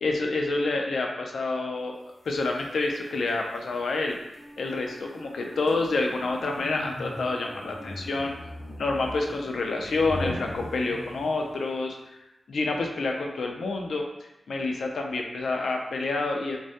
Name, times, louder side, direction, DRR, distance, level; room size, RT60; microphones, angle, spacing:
voice 1, 0.0-1.9 2.2-4.2 4.6-8.3 8.8-12.0 12.5-14.0 14.5-16.6, left 3 dB, 90° left, 2 dB, 0.3 m, -28 dB
sound 1, 2.2-11.6, left 1 dB, 45° left, 0.8 m, -40 dB
Wind instrument woodwind instrument, 4.3-9.0, equal, 45° right, 0.7 m, -49 dB
2.2 x 2.1 x 2.7 m, 0.91 s
wide cardioid pair, 160°, 0 cm